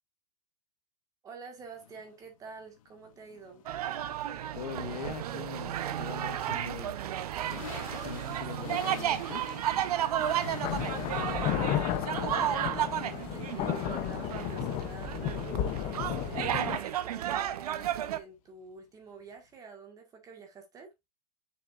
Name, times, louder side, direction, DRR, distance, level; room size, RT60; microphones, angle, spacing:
voice 1, 1.2-3.6 10.8-15.1 15.8-20.9, right 4 dB, 15° right, 1.8 m, -49 dB
sound 1, 1.6-19.6, left 10 dB, 55° left, 1.3 m, -50 dB
sound 2, 3.7-18.2, right 11 dB, 65° right, 0.9 m, -33 dB
voice 2, 4.5-7.0 7.9-9.4, left 6 dB, 80° left, 1.5 m, -41 dB
sound 3, 9.5-9.6 10.3-16.8, left 11 dB, 25° left, 0.8 m, -33 dB
6.9 x 6.6 x 2.5 m
hypercardioid pair, 150°, 21 cm